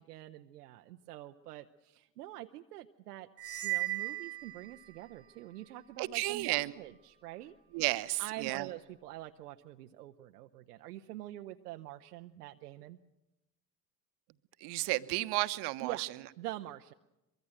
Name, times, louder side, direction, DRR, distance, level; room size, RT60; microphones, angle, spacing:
voice 1, 0.0-3.3 3.6-7.5 8.2-13.0 15.8-16.1 16.4-16.9, right 15 dB, 75° right, 6 dB, 0.8 m, -45 dB
sound 1, 3.4-5.2, right 17 dB, 30° right, 1.5 m, -37 dB
voice 2, 6.0-6.7 7.7-8.7 14.6-16.1, right 20 dB, 55° right, 13 dB, 1.1 m, -32 dB
23.5 x 23.0 x 7.7 m, 0.97 s
figure-of-eight pair, 60°, 47 cm